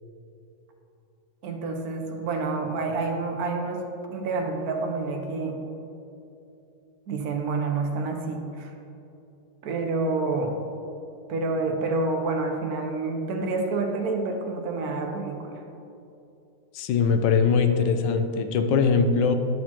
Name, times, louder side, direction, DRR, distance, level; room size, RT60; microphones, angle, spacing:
voice 1, 1.4-5.6 7.1-8.7 9.6-10.6 11.3-15.6, right 3 dB, 60° right, 3 dB, 1.2 m, -28 dB
voice 2, 16.7-19.3, left 5 dB, 75° left, 7 dB, 1.2 m, -21 dB
10.5 x 6.5 x 2.9 m, 2.8 s
omnidirectional pair, 2.0 m